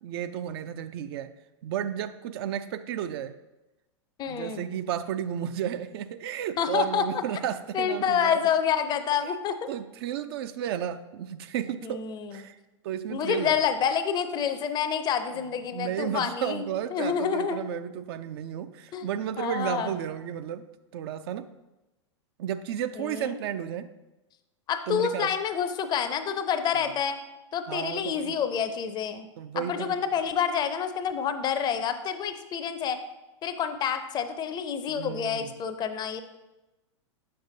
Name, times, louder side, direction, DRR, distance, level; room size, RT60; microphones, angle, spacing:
voice 1, 0.0-1.3 1.6-3.4 4.3-8.4 9.7-12.1 12.3-12.6 12.8-13.6 15.3-20.7 20.9-21.5 22.4-23.9 24.9-25.3 27.7-28.3 29.4-30.0 34.9-35.6, right 10 dB, 55° right, 11 dB, 0.4 m, -33 dB
voice 2, 4.2-4.7 6.6-7.1 7.7-9.7 11.8-12.3 13.1-17.6 18.9-19.1 19.4-19.9 23.0-23.4 24.7-27.2 27.5-29.3 29.6-33.0 33.4-36.2, left 7 dB, 30° left, 9 dB, 0.5 m, -28 dB
7.8 x 6.6 x 2.7 m, 1.0 s
hypercardioid pair, 105°, 16 cm